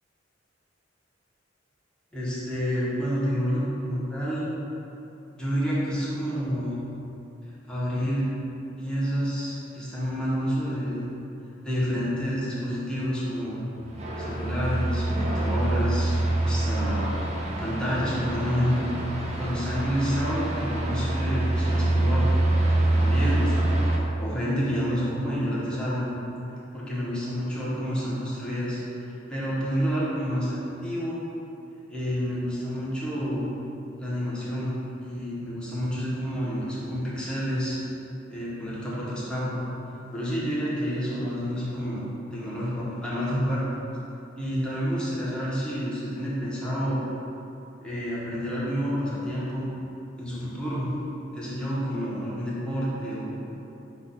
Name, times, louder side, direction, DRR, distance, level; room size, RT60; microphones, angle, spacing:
voice 1, 2.1-4.5 5.4-6.8 7.7-8.3 8.8-11.0 11.6-13.6 14.2-17.1 17.6-18.9 19.4-22.3 22.7-23.8 24.2-26.1 26.7-31.2 31.9-33.5 34.0-34.7 35.0-37.8 38.3-39.6 40.1-42.0 42.3-43.6 44.3-47.0 47.8-49.6 50.2-50.9 51.3-53.5, equal, 5° left, -9 dB, 0.9 m, -29 dB
sound 1, 13.9-24.0, right 1 dB, 35° right, 0.5 m, -25 dB
5.7 x 2.3 x 3.9 m, 2.9 s
head